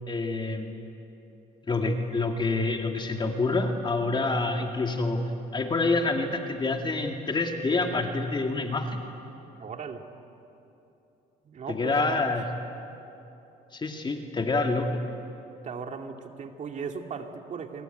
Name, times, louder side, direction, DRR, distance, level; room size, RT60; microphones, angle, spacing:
voice 1, 0.1-0.7 1.7-9.0 11.7-12.5 13.7-14.9, left 3 dB, 25° left, 4 dB, 2.1 m, -27 dB
voice 2, 9.6-10.0 11.4-12.1 15.6-17.8, right 6 dB, 45° right, 5 dB, 2.3 m, -37 dB
27.5 x 22.5 x 9.1 m, 2.9 s
cardioid pair, 110°, 17 cm